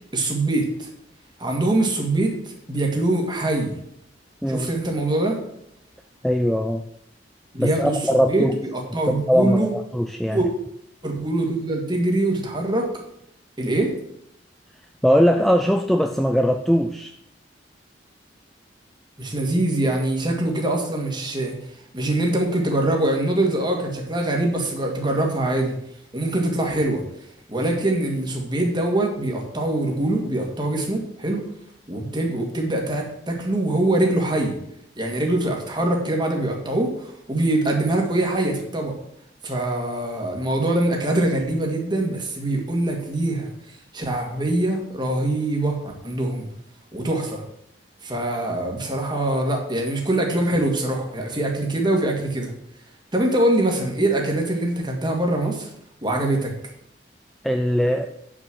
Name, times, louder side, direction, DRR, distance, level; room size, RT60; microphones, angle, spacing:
voice 1, 0.1-0.9 1.4-3.8 4.5-5.4 7.5-9.7 10.3-10.5 11.0-12.9 13.6-13.9 19.2-21.6 21.9-25.8 26.1-27.0 27.5-31.4 31.9-34.6 35.0-39.0 39.4-43.5 43.9-46.5 46.9-47.4 48.0-52.5 53.1-55.7 56.0-56.5, right 1 dB, 25° right, 1 dB, 2.0 m, -23 dB
voice 2, 6.2-6.8 7.6-8.5 9.1-10.4 15.0-17.1 57.4-58.1, equal, ahead, 5 dB, 0.4 m, -20 dB
8.8 x 6.2 x 6.2 m, 0.75 s
head